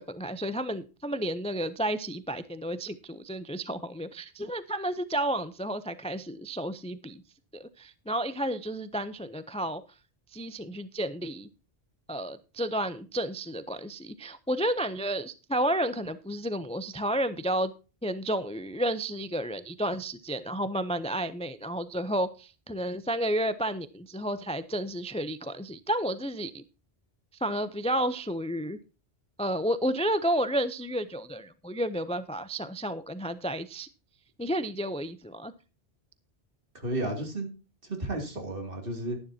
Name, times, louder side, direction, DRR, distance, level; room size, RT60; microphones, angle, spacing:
voice 1, 0.0-7.2 7.5-9.8 10.3-11.5 12.1-17.7 18.0-26.6 27.4-28.8 29.4-33.9 34.4-35.5, right 1 dB, 10° left, 0.4 m, -31 dB
voice 2, 36.7-37.5 37.8-39.2, right 1 dB, 60° right, 2.9 m, -33 dB
12.5 x 11.0 x 2.8 m
omnidirectional pair, 1.1 m